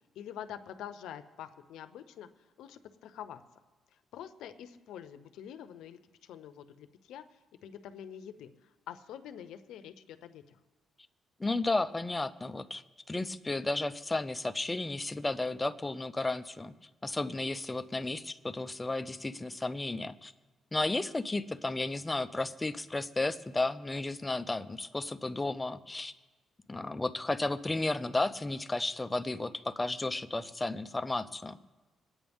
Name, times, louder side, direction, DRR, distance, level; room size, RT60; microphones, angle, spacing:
voice 1, 0.2-2.3 2.6-3.4 4.1-7.2 7.6-8.5 8.9-10.6, left 9 dB, 85° left, 10 dB, 0.8 m, -46 dB
voice 2, 11.4-12.8 13.1-16.7 17.0-20.3 20.7-26.1 26.7-31.6, left 2 dB, 15° left, 10 dB, 0.7 m, -33 dB
26.0 x 8.7 x 3.6 m, 1.3 s
cardioid pair, 90°, 0 cm